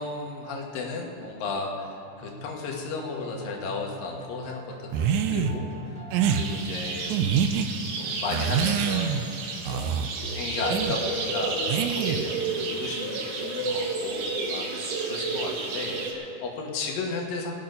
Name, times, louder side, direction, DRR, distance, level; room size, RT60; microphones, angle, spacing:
voice 1, 0.0-6.0 6.3-7.2 8.0-17.5, left 4 dB, 85° left, 0 dB, 3.1 m, -34 dB
sound 1, 2.2-7.4, right 2 dB, 5° left, 1.5 m, -43 dB
sound 2, 4.9-5.6 6.1-6.4 7.1-7.7 8.3-9.3 9.7-10.1 10.7-11.0 11.7-12.3, right 8 dB, 85° right, 1.7 m, -25 dB
sound 3, 6.2-16.1, right 3 dB, 70° right, 2.7 m, -31 dB
19.0 x 8.6 x 5.4 m, 2.8 s
omnidirectional pair, 3.9 m